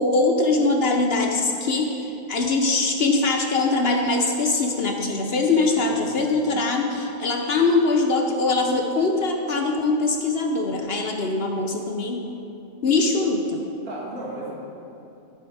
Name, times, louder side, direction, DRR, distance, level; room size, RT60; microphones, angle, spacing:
voice 1, 0.0-12.2 12.8-13.6, left 3 dB, 50° left, 3 dB, 0.9 m, -22 dB
voice 2, 5.8-6.1 13.9-14.5, right 2 dB, 80° right, -5 dB, 2.6 m, -35 dB
11.0 x 7.9 x 4.8 m, 2.7 s
omnidirectional pair, 1.5 m